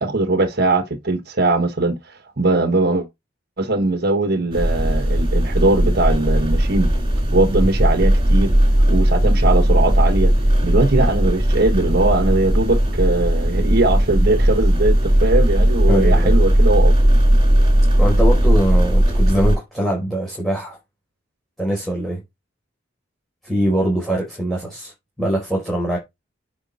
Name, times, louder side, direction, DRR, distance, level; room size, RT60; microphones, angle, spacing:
voice 1, 0.0-3.1 3.6-6.9 7.3-8.6 8.9-10.3 10.6-16.9, right 2 dB, 55° right, 1.2 m, -20 dB
sound 1, 4.5-19.6, right 1 dB, 30° right, 5.6 m, -16 dB
voice 2, 15.9-16.3 18.0-20.8 21.6-22.2 23.4-24.9 25.2-26.0, right 1 dB, ahead, 4.6 m, -22 dB
9.8 x 5.7 x 4.1 m
head